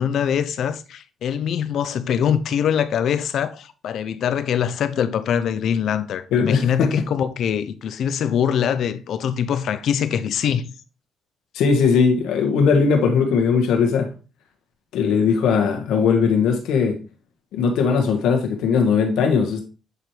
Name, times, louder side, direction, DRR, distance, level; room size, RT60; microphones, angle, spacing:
voice 1, 0.0-10.7, left 8 dB, 70° left, 0.6 m, -23 dB
voice 2, 6.3-7.1 11.5-14.1 14.9-17.0 17.5-19.6, left 5 dB, 90° left, 1.5 m, -19 dB
8.2 x 4.4 x 3.2 m
cardioid pair, 90°, 0 cm